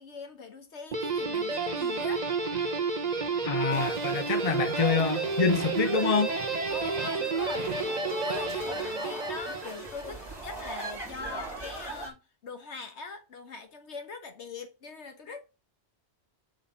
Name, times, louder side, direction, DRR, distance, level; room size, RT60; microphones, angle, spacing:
voice 1, 0.0-2.3 6.7-7.9 8.2-15.4, left 4 dB, 75° left, 1.6 m, -42 dB
Guitar, 0.9-10.2, right 4 dB, 40° right, 1.2 m, -31 dB
voice 2, 3.4-6.4, left 5 dB, 35° left, 1.0 m, -26 dB
sound 1, 3.7-12.1, right 2 dB, 20° right, 4.0 m, -40 dB
7.4 x 4.5 x 5.6 m
omnidirectional pair, 1.2 m